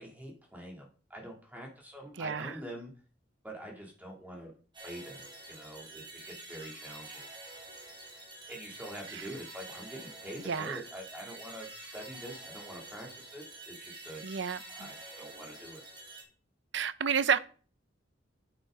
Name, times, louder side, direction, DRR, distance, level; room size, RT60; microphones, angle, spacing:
voice 1, 0.0-2.9 3.4-4.5 4.8-7.3 8.5-14.2 14.7-15.8, right 1 dB, 10° right, 2.9 m, -45 dB
voice 2, 2.2-2.6 9.1-9.3 10.5-10.8 14.2-14.9 16.7-17.4, right 7 dB, 65° right, 0.6 m, -31 dB
sound 1, 4.7-16.2, right 2 dB, 25° right, 3.8 m, -48 dB
8.9 x 8.9 x 3.9 m
head